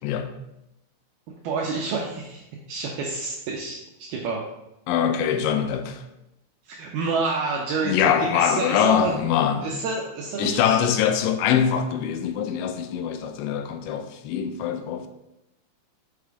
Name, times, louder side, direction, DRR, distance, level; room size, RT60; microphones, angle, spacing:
voice 1, 1.4-4.4 6.6-9.1 9.6-10.9, right 4 dB, 85° right, 2.2 m, -29 dB
voice 2, 4.9-6.0 7.8-9.7 10.4-15.1, left 8 dB, 85° left, 2.9 m, -23 dB
6.3 x 6.0 x 4.8 m
omnidirectional pair, 5.4 m